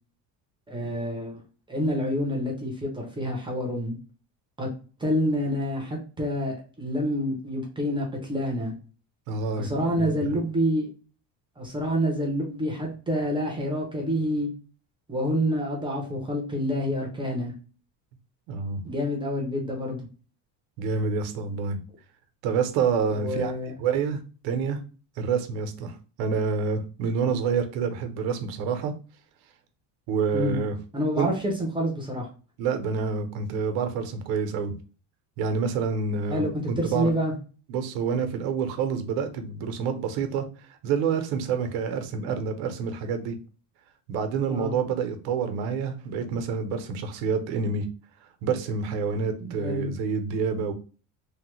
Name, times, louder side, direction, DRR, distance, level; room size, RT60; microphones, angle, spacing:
voice 1, 0.7-1.4 1.7-4.0 4.6-4.7 5.0-8.7 9.6-10.9 11.6-14.5 15.1-17.5 18.8-20.1 23.1-23.7 30.3-30.6 30.9-32.3 36.3-37.3 44.5-44.7 49.4-49.9, equal, 10° right, -1 dB, 0.5 m, -28 dB
voice 2, 9.3-10.4 18.5-18.8 20.8-21.8 22.4-23.5 23.8-24.8 25.2-28.9 30.1-30.8 31.2-31.3 32.6-34.8 35.4-37.1 37.7-40.4 40.8-43.4 44.1-47.9 48.4-50.7, right 5 dB, 85° right, 7 dB, 0.8 m, -28 dB
3.2 x 2.1 x 3.0 m, 0.36 s
cardioid pair, 175°, 44 cm